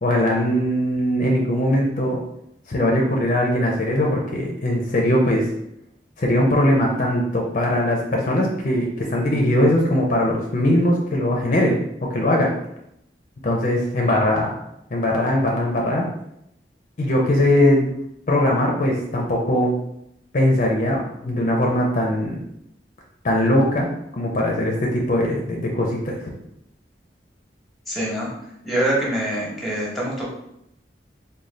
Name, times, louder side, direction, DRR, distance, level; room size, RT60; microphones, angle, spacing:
voice 1, 0.0-2.2 2.7-5.5 6.2-11.8 12.1-12.5 13.4-14.5 14.9-16.1 17.0-17.9 18.3-19.7 20.3-22.4 23.2-23.9 24.1-26.3, left 1 dB, 45° left, -1 dB, 0.5 m, -20 dB
voice 2, 27.9-28.3 28.6-30.3, right 1 dB, ahead, -4 dB, 0.9 m, -24 dB
3.8 x 2.2 x 3.2 m, 0.79 s
head